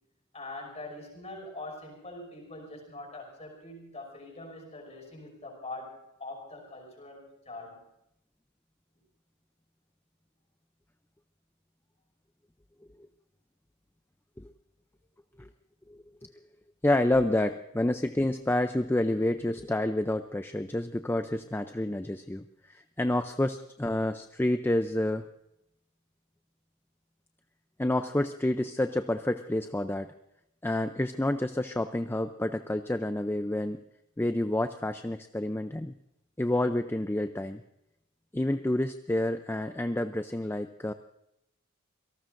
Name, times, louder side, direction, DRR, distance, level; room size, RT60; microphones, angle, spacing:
voice 1, 0.3-7.9, left 2 dB, 30° left, 1 dB, 5.7 m, -43 dB
voice 2, 15.9-16.3 16.8-25.3 27.8-30.1 30.6-33.8 34.2-35.9 36.4-37.6 38.3-40.9, left 1 dB, 10° left, 8 dB, 0.5 m, -29 dB
27.0 x 18.5 x 2.6 m, 0.83 s
head